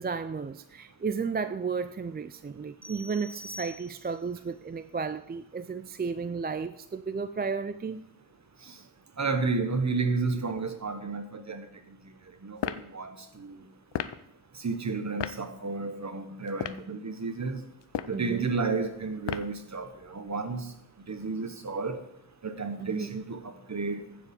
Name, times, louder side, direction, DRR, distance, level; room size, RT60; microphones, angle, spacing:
voice 1, 0.0-8.0 18.1-18.5 22.8-23.2, right 5 dB, 25° right, 0.3 m, -33 dB
sound 1, 2.8-4.3, left 1 dB, 5° right, 1.5 m, -45 dB
voice 2, 9.2-11.7 12.4-13.6 14.6-17.6 18.1-20.7 21.1-22.0 22.4-24.0, right 4 dB, 40° right, 1.2 m, -32 dB
sound 2, 12.6-12.9 13.9-14.2 15.2-15.4 16.5-16.9 17.8-18.2 19.3-19.6, left 10 dB, 90° left, 0.6 m, -33 dB
15.0 x 5.0 x 5.3 m
wide cardioid pair, 65°, 41 cm